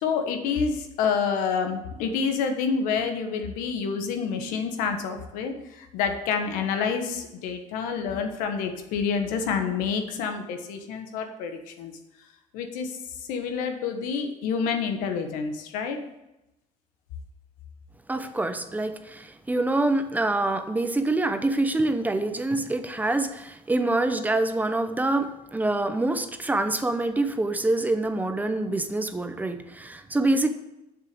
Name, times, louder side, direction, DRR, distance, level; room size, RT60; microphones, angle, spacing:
voice 1, 0.0-11.9 12.5-12.9 13.3-16.0, left 6 dB, 85° left, 5 dB, 1.4 m, -28 dB
voice 2, 18.1-30.5, right 2 dB, 10° right, 8 dB, 0.8 m, -26 dB
7.3 x 6.8 x 6.8 m, 0.93 s
cardioid pair, 115°, 14 cm